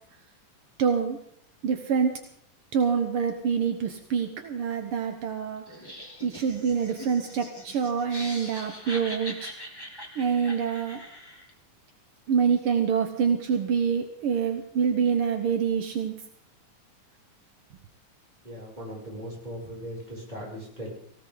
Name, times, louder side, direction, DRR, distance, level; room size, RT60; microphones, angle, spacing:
voice 1, 0.8-1.2 1.6-2.2 2.7-5.9 6.2-9.5 10.1-11.0 12.3-16.2, right 6 dB, 65° right, 6 dB, 1.3 m, -26 dB
Laughter, 5.7-11.5, left 1 dB, 10° left, 2.2 m, -42 dB
voice 2, 18.4-20.9, equal, 10° right, -4 dB, 6.7 m, -39 dB
18.5 x 18.0 x 4.0 m, 0.66 s
omnidirectional pair, 4.0 m